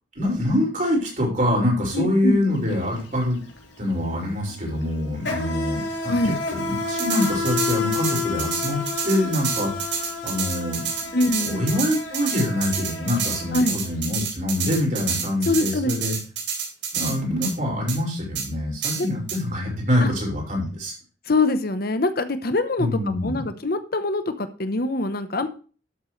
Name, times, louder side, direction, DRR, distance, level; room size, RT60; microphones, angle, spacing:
voice 1, 0.2-3.4 3.8-5.8 6.5-10.8 11.4-16.1 16.9-20.9 22.8-23.4, left 1 dB, 45° right, -2 dB, 5.7 m, -25 dB
voice 2, 1.9-2.4 6.1-6.4 11.1-11.6 13.5-13.8 15.5-15.9 19.0-19.1 20.0-20.1 21.3-25.5, left 2 dB, 55° left, 10 dB, 0.9 m, -24 dB
Insect, 2.5-2.7 3.0-14.0, left 4 dB, 80° left, 3.5 m, -30 dB
sound 1, 7.0-17.2 17.4-17.5 17.9-18.0 18.4-18.5 18.8-19.4, right 7 dB, 80° right, 3.9 m, -29 dB
12.5 x 8.2 x 3.2 m, 0.37 s
head